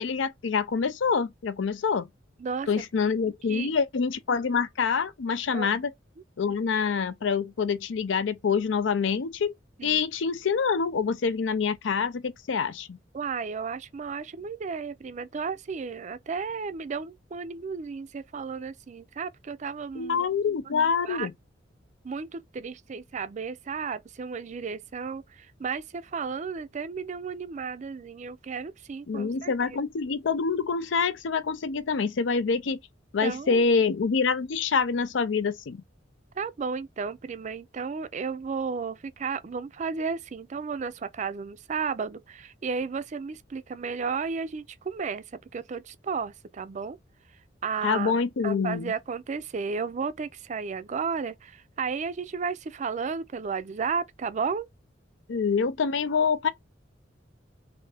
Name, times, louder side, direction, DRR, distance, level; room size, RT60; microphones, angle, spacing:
voice 1, 0.0-2.1 2.7-5.9 6.4-9.5 9.8-13.0 19.9-21.3 29.1-32.8 33.1-35.8 47.8-48.9 55.3-56.5, left 5 dB, 80° left, 0.5 m, -26 dB
voice 2, 13.1-20.3 21.0-21.3 22.0-29.5 33.2-33.6 36.4-45.2 45.5-47.0 47.6-54.7, right 5 dB, 40° right, 0.4 m, -33 dB
3.4 x 2.6 x 3.3 m
head